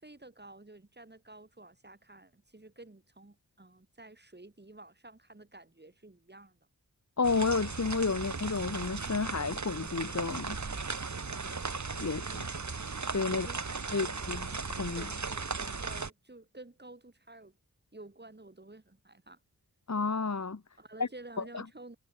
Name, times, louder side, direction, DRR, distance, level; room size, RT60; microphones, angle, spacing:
voice 1, 0.0-6.6 11.4-11.7 13.3-14.3 14.7-17.6 17.9-19.4 20.8-22.0, right 2 dB, 30° right, 7.3 m, -52 dB
voice 2, 7.2-10.6 12.0-12.5 13.1-13.5 13.9-14.5 14.8-15.1 19.9-20.6 21.0-21.1 21.5-21.6, left 4 dB, 50° left, 3.3 m, -31 dB
sound 1, 7.2-16.1, right 4 dB, 50° right, 3.0 m, -37 dB
wide cardioid pair, 90°, 36 cm